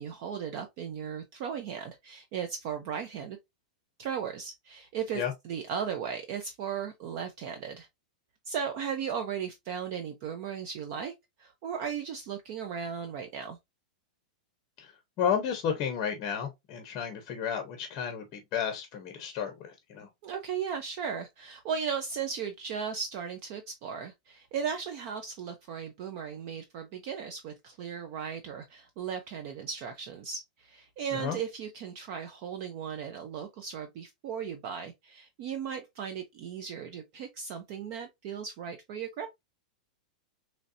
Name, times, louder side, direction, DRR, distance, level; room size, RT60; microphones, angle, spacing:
voice 1, 0.0-3.4 4.0-7.9 8.5-11.1 11.4-13.6 20.2-39.3, right 7 dB, 35° right, 0.5 m, -36 dB
voice 2, 15.2-20.1 31.1-31.4, left 8 dB, 25° left, 0.7 m, -32 dB
4.0 x 3.1 x 2.6 m
supercardioid pair, 175°, 4 cm